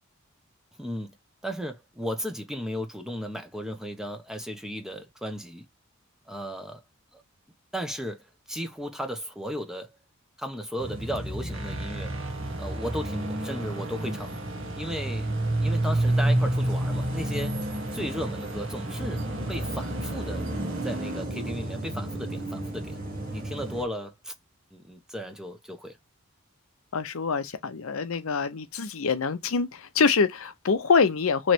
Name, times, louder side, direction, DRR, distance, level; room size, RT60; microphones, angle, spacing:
voice 1, 0.8-1.1 1.4-5.6 6.3-6.8 7.1-7.2 7.7-10.0 10.4-12.1 12.6-14.3 14.8-15.3 15.6-17.6 17.9-20.5 20.8-23.0 23.3-24.3 24.7-26.0, equal, ahead, 0.8 m, -35 dB
sound 1, 10.8-23.9, right 1 dB, 40° right, 1.3 m, -30 dB
sound 2, 11.5-21.3, right 3 dB, 65° right, 1.0 m, -43 dB
voice 2, 26.9-31.5, left 5 dB, 75° left, 0.6 m, -25 dB
3.1 x 3.1 x 4.4 m
head